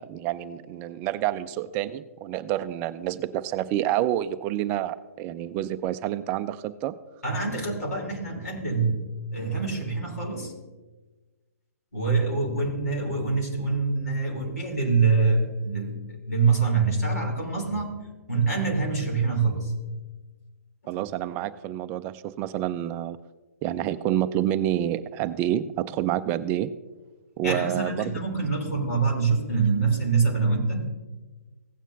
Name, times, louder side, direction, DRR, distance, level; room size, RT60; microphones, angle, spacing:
voice 1, 0.0-6.9 20.9-23.2 23.6-26.7 27.4-28.1, right 12 dB, 20° right, 13 dB, 0.4 m, -28 dB
voice 2, 7.2-9.0 9.3-10.5 11.9-19.7 20.8-21.0 27.4-30.9, right 4 dB, 80° left, -2 dB, 3.4 m, -25 dB
16.0 x 9.0 x 2.7 m, 1.2 s
figure-of-eight pair, 130°, 8 cm